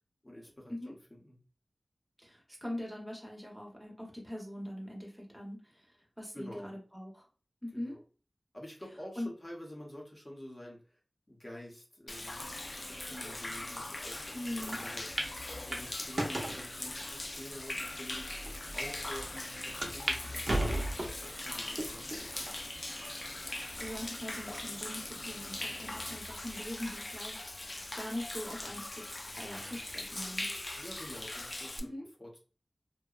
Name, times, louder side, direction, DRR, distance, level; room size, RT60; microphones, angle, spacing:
voice 1, 0.2-1.4 6.3-6.7 7.7-8.0 8.5-11.0 11.3-15.1 15.5-18.4 18.7-22.6 30.8-31.9 32.2-32.4, left 1 dB, 25° left, -2 dB, 0.7 m, -48 dB
voice 2, 2.2-7.2 7.6-8.0 9.2-9.3 14.3-14.8 23.4-29.0 29.4-30.5 31.8-32.1, left 1 dB, 5° right, -1 dB, 0.8 m, -42 dB
Human voice / Rain / Stream, 12.1-31.8, left 2 dB, 40° left, 0.3 m, -41 dB
sound 1, 12.3-26.2, left 1 dB, 80° left, 0.9 m, -54 dB
sound 2, 14.7-14.8 15.2-15.3 15.7-16.6 17.3-17.4 18.1-18.2 18.4-18.5 19.8-20.2 20.4-21.2 21.8-22.2 22.8-22.9 24.0-24.4, right 1 dB, 55° right, 0.6 m, -34 dB
2.6 x 2.1 x 2.3 m, 0.36 s
wide cardioid pair, 65°, 0 cm